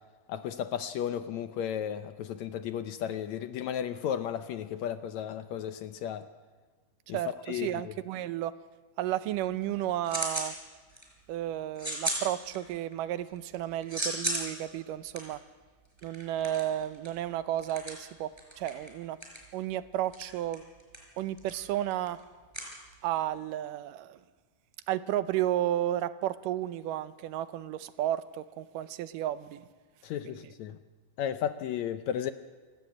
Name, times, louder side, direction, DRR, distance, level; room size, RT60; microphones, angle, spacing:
voice 1, 0.3-6.3 7.1-7.2 7.5-7.9 30.0-30.8 31.2-32.3, left 9 dB, 75° left, 10 dB, 1.8 m, -34 dB
voice 2, 7.1-8.5 9.0-10.6 11.3-15.4 16.0-18.3 18.6-19.2 19.5-20.6 21.2-22.2 23.0-24.2 24.9-29.7 30.2-30.5, right 12 dB, 80° right, 13 dB, 2.4 m, -32 dB
sound 1, 9.5-10.6 10.9-11.3 11.8-12.9 13.3-23.4, right 1 dB, 5° right, 5.0 m, -37 dB
28.5 x 13.5 x 8.6 m, 1.4 s
omnidirectional pair, 3.8 m